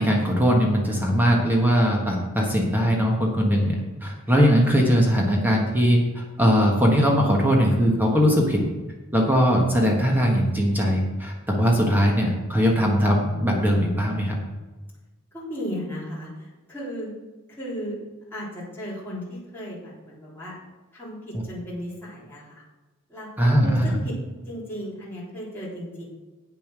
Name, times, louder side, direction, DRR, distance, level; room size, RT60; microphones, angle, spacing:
voice 1, 0.0-8.6 9.1-14.4 23.4-24.0, equal, 10° right, -1 dB, 1.4 m, -20 dB
voice 2, 15.3-17.1 17.5-17.9 18.3-20.5 20.9-22.6 23.1-23.3 23.6-24.2 24.5-26.0, equal, 10° left, -8 dB, 3.5 m, -35 dB
8.6 x 7.1 x 6.2 m, 1.2 s
head